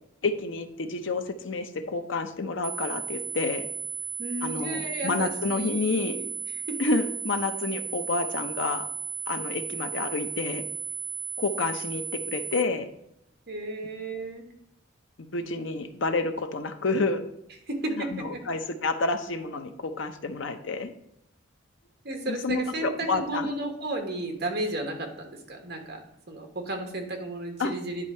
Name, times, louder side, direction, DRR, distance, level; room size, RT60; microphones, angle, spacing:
voice 1, 0.2-3.7 4.4-6.2 6.8-8.9 9.3-10.7 11.4-12.9 15.2-17.2 18.0-20.9 22.3-23.5 27.6-27.7, left 3 dB, 65° left, 8 dB, 0.6 m, -29 dB
sound 1, 2.6-12.6, right 7 dB, 85° right, 0.4 m, -35 dB
voice 2, 4.2-6.3 6.7-6.8 13.5-14.5 17.7-18.4 22.0-26.0 26.3-28.0, right 1 dB, 55° right, 3 dB, 1.3 m, -33 dB
9.9 x 3.6 x 4.3 m, 0.80 s
head